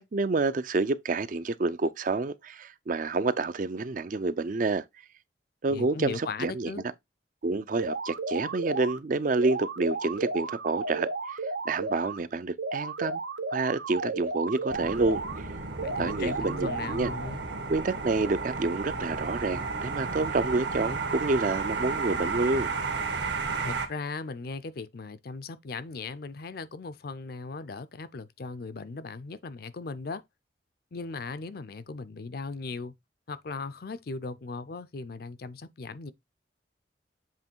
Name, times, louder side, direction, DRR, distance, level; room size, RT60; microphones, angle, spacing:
voice 1, 0.0-4.8 5.6-6.7 7.4-11.4 11.7-13.2 13.5-15.2 16.0-17.1 17.7-22.7, right 3 dB, 45° right, 0.5 m, -28 dB
voice 2, 5.7-6.8 15.8-17.4 23.6-30.2 30.9-32.9 33.3-36.1, left 4 dB, 55° left, 0.5 m, -38 dB
sound 1, 7.8-9.0 9.4-12.2 12.6-15.4 15.8-17.4, right 3 dB, 90° right, 0.9 m, -34 dB
sound 2, 14.7-23.9, right 4 dB, 70° right, 1.5 m, -33 dB
7.6 x 3.1 x 4.5 m
head